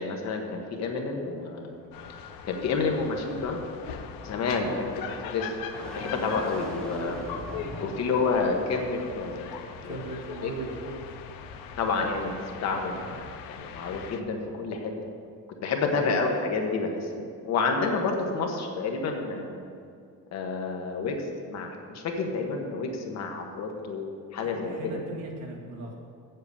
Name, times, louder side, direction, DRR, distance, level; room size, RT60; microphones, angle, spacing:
voice 1, 0.0-1.7 2.4-3.6 4.2-4.9 5.3-5.5 6.0-7.2 7.8-9.5 9.8-10.1 10.4-10.5 11.8-12.4 12.6-13.2 13.5-14.9 15.6-19.6 20.3-21.2 21.5-24.7, left 4 dB, 50° left, 2 dB, 1.3 m, -29 dB
sound 1, 0.8-8.1, equal, ahead, 1.7 m, -41 dB
sound 2, 1.9-14.2, left 7 dB, 85° left, 0.8 m, -41 dB
voice 2, 9.8-11.2 13.0-13.1 15.9-16.1 24.4-25.9, right 3 dB, 50° right, 0 dB, 1.8 m, -39 dB
8.0 x 7.8 x 7.0 m, 2.3 s
cardioid pair, 170°, 34 cm